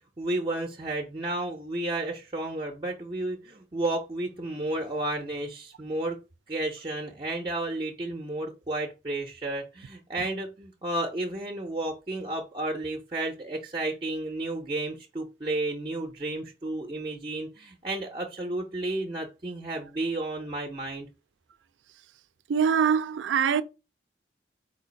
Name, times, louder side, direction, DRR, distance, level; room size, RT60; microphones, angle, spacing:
voice 1, 0.2-6.2 6.5-21.1, right 2 dB, 25° right, 0.5 m, -32 dB
voice 2, 22.5-23.6, right 7 dB, 85° right, 0.3 m, -23 dB
4.4 x 2.4 x 3.9 m
head